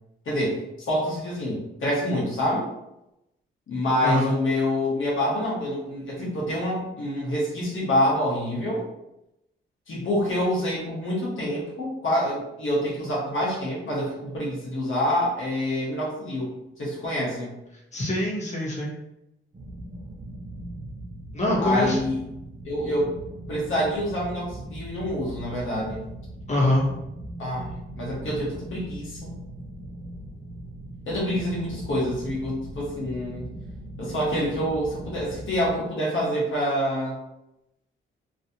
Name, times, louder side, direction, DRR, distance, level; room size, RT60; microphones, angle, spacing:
voice 1, 0.2-0.6 0.9-2.7 3.7-8.8 9.9-17.5 21.6-22.2 22.6-23.1 23.5-26.0 27.4-27.6 27.9-29.3 31.1-33.5 34.0-37.2, equal, 70° left, -6 dB, 1.3 m, -26 dB
voice 2, 4.0-4.3 17.9-18.9 21.3-22.0 26.5-26.9, left 1 dB, 35° left, -6 dB, 1.3 m, -24 dB
sound 1, 19.5-35.7, right 1 dB, 40° right, 1.1 m, -39 dB
3.2 x 2.6 x 2.7 m, 0.86 s
cardioid pair, 65°, 21 cm